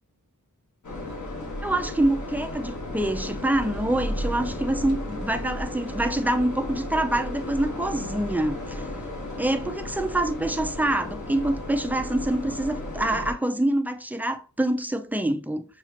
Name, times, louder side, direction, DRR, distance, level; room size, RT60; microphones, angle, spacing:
sound 1, 0.8-13.3, left 1 dB, 55° left, 1.3 m, -34 dB
voice 1, 1.6-8.9 9.4-15.6, right 1 dB, 5° right, 0.4 m, -26 dB
5.6 x 2.4 x 2.9 m
wide cardioid pair, 65°, 35 cm